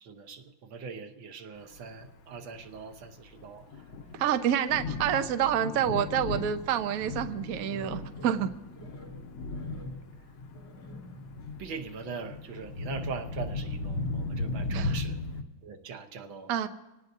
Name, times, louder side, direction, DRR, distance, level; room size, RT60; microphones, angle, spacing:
voice 1, 0.0-3.8 11.6-15.2 15.6-16.5, right 5 dB, 90° right, 5 dB, 1.9 m, -41 dB
Thunder, 1.8-15.4, left 3 dB, 85° left, 1.9 m, -37 dB
voice 2, 4.2-8.5 14.7-14.9 16.5-16.7, right 9 dB, 60° right, 9 dB, 1.0 m, -28 dB
sound 1, 7.4-11.5 11.9-12.0 12.5-13.2 13.6-13.7 14.1-14.2, left 1 dB, 30° left, 3.1 m, -47 dB
25.0 x 18.0 x 2.7 m, 1.0 s
omnidirectional pair, 2.1 m